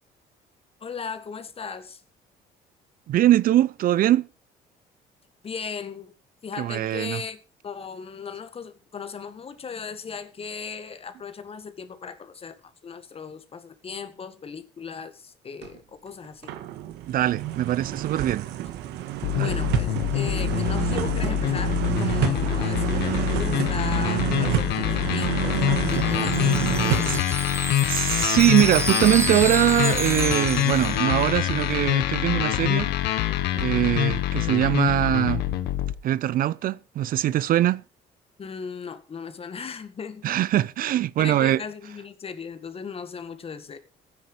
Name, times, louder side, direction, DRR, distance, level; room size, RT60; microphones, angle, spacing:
voice 1, 0.8-2.0 5.4-6.1 6.4-12.6 12.8-16.5 19.3-27.2 38.4-40.3 41.2-43.8, left 6 dB, 35° left, 1.9 m, -37 dB
voice 2, 3.1-4.3 6.6-7.2 17.1-18.5 19.3-19.5 27.1-27.2 27.8-32.9 33.5-35.4 36.0-37.8 40.2-41.6, right 13 dB, 60° right, 0.5 m, -22 dB
sound 1, 15.6-15.8 16.2-27.2, right 12 dB, 90° right, 1.6 m, -28 dB
sound 2, 19.2-36.0, left 13 dB, 85° left, 1.5 m, -25 dB
Wind chime, 25.6-31.6, right 3 dB, 15° right, 0.8 m, -31 dB
14.5 x 9.7 x 5.0 m
cardioid pair, 110°, 17 cm